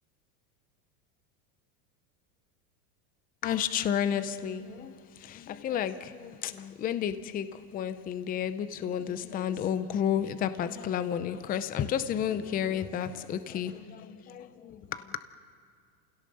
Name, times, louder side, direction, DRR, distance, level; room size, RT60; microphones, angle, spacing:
voice 1, 3.4-15.2, left 9 dB, 20° left, 12 dB, 0.6 m, -32 dB
29.0 x 17.0 x 6.8 m, 2.2 s
supercardioid pair, 145°, 45 cm